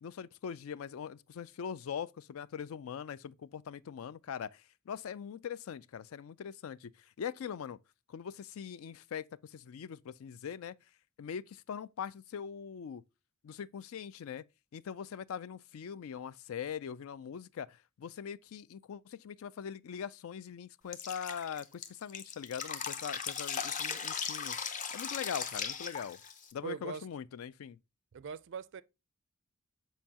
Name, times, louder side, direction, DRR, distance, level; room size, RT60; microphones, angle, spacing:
voice 1, 0.0-6.9 7.2-7.8 8.1-10.7 11.2-13.0 13.4-14.4 14.7-26.2 26.5-27.8, left 7 dB, 70° left, 0.4 m, -42 dB
Drip, 20.9-26.5, left 6 dB, 35° left, 0.7 m, -38 dB
voice 2, 26.6-27.0 28.1-28.8, right 6 dB, 55° right, 0.4 m, -41 dB
7.4 x 4.5 x 2.8 m
head